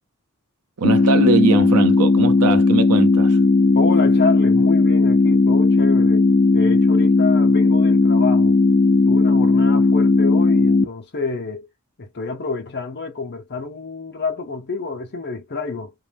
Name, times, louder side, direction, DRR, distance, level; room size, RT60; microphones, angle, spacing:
sound 1, 0.8-10.9, left 3 dB, 25° left, 0.5 m, -16 dB
voice 1, 0.8-3.4, right 4 dB, 75° right, 0.7 m, -20 dB
voice 2, 3.7-6.3 6.5-8.6 9.1-11.7 12.0-15.9, left 4 dB, 50° left, 0.8 m, -28 dB
3.0 x 2.7 x 3.3 m
head